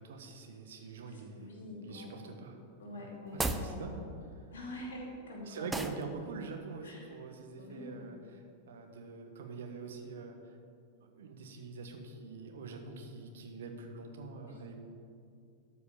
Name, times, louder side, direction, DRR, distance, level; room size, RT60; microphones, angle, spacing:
voice 1, 0.0-1.5 1.8-2.6 3.0-4.1 4.3-4.4 5.4-10.6 11.1-14.8, right 4 dB, 60° right, 4 dB, 1.2 m, -45 dB
voice 2, 1.1-2.1 2.8-4.1 4.5-5.7 6.8-7.0 7.6-8.3 14.4-14.6, left 1 dB, 65° left, -1 dB, 2.6 m, -46 dB
sound 1, 3.3-3.7 5.7-6.0, right 2 dB, 5° right, 0.6 m, -33 dB
12.5 x 5.1 x 7.0 m, 2.4 s
figure-of-eight pair, 90°, 0 cm